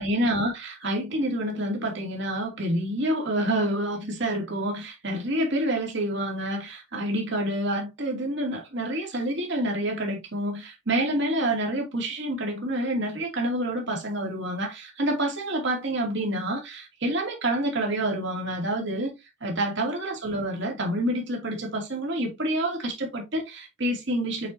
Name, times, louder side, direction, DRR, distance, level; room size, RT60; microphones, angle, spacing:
voice 1, 0.0-19.1 19.4-24.5, right 1 dB, 60° right, 2.3 m, -28 dB
8.2 x 4.4 x 2.7 m
head